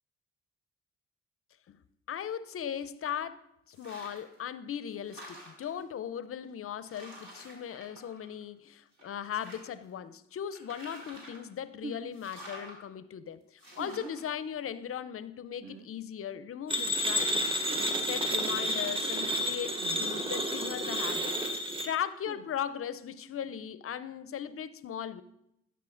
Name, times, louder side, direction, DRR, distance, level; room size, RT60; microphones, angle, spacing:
voice 1, 2.1-13.4 13.8-17.6 18.0-21.3 21.8-25.2, left 9 dB, 40° left, 0.5 m, -38 dB
sound 1, 3.7-4.4 4.7-5.8 6.4-6.5 6.8-8.6 8.9-9.9 10.5-11.5 12.1-12.8 13.6-14.2, equal, 60° right, 2.8 m, -49 dB
sound 2, 11.8-12.1 13.8-14.2 15.6-15.9 17.6-17.9 19.8-20.1 22.2-22.5, right 4 dB, 40° right, 0.6 m, -44 dB
sound 3, 16.7-21.9, equal, 15° right, 1.0 m, -30 dB
11.0 x 5.6 x 2.5 m
supercardioid pair, 50°, 33 cm